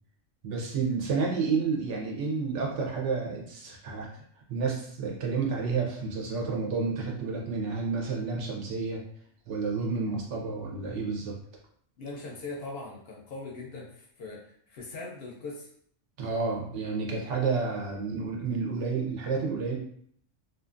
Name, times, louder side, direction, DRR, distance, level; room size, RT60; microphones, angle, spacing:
voice 1, 0.4-4.1 4.5-9.0 9.5-11.3 16.2-19.8, right 4 dB, 70° right, -1 dB, 1.0 m, -30 dB
voice 2, 12.0-15.7, left 3 dB, 60° left, -2 dB, 0.7 m, -40 dB
2.5 x 2.4 x 2.4 m, 0.62 s
omnidirectional pair, 1.3 m